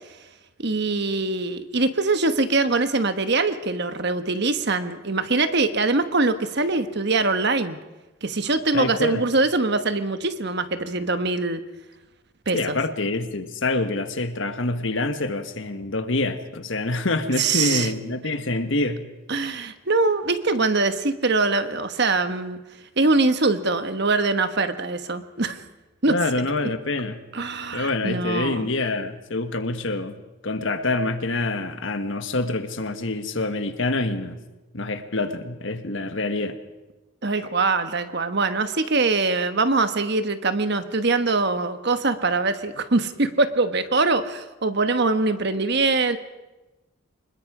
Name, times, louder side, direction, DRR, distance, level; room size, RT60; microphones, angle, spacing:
voice 1, 0.6-7.8 8.2-11.6 12.5-12.8 17.4-17.9 19.3-22.6 23.0-25.6 26.0-26.2 27.3-28.7 37.2-46.2, right 3 dB, 50° right, 10 dB, 1.2 m, -23 dB
voice 2, 8.7-9.2 12.5-19.1 26.1-27.2 27.7-30.2 30.4-34.4 34.7-36.6, left 2 dB, 60° left, 9 dB, 1.4 m, -26 dB
25.5 x 21.5 x 5.0 m, 1.1 s
head